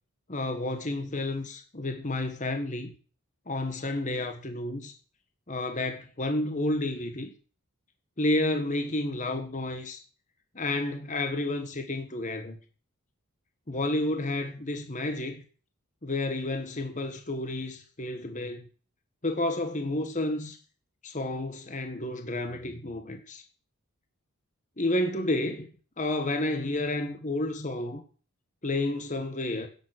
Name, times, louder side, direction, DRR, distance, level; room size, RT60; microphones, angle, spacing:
voice 1, 0.3-2.9 3.5-4.9 5.5-7.3 8.2-10.0 10.5-12.6 13.7-15.4 16.0-18.7 19.2-20.6 21.0-23.4 24.8-25.7 26.0-28.0 28.6-29.7, left 2 dB, 35° left, 1.5 m, -30 dB
10.5 x 7.2 x 8.0 m
head